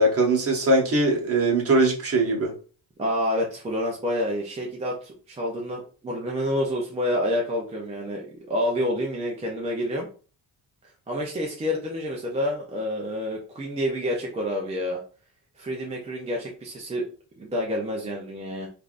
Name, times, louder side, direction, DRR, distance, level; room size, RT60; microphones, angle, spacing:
voice 1, 0.0-2.5, right 2 dB, 35° right, -1 dB, 0.9 m, -21 dB
voice 2, 3.0-10.1 11.1-15.0 15.6-17.1 17.4-18.7, equal, 15° right, -2 dB, 0.4 m, -28 dB
3.3 x 2.5 x 2.4 m, 0.39 s
cardioid pair, 155°, 42 cm